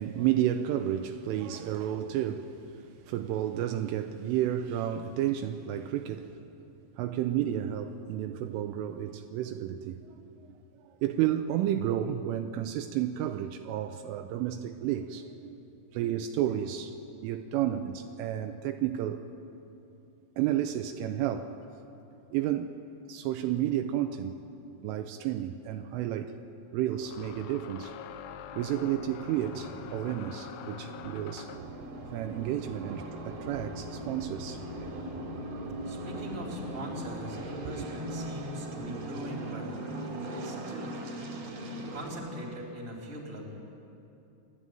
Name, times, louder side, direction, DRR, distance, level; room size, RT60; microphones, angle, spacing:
voice 1, 0.0-6.5 7.0-10.5 10.8-15.6 15.9-16.9 17.2-19.3 20.4-21.5 22.3-22.8 23.1-24.4 24.8-26.3 26.7-28.0 28.5-31.5 32.1-34.6 36.2-36.3 37.6-37.9, right 11 dB, 80° right, 3.1 m, -31 dB
sound 1, 25.0-25.1 26.9-31.8, left 9 dB, 85° left, 2.5 m, -45 dB
sound 2, 29.1-42.1, right 1 dB, 40° right, 2.9 m, -39 dB
voice 2, 35.8-39.7 40.3-40.9 41.9-43.5, equal, 15° right, 3.0 m, -41 dB
28.5 x 12.5 x 9.2 m
omnidirectional pair, 5.9 m